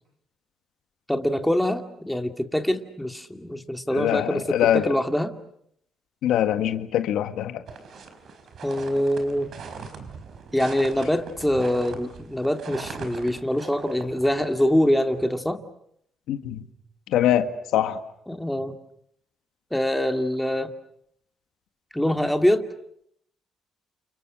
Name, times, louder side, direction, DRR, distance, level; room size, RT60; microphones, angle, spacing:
voice 1, 1.1-5.3 8.6-9.5 10.5-15.6 18.3-18.8 19.7-20.7 21.9-22.7, equal, 5° left, 2.5 m, -24 dB
voice 2, 3.9-4.9 6.2-7.6 16.3-16.7 17.1-18.0, left 11 dB, 85° left, 1.8 m, -23 dB
sound 1, 7.7-15.2, right 5 dB, 60° right, 5.0 m, -41 dB
30.0 x 29.0 x 6.4 m
cardioid pair, 90°, 0 cm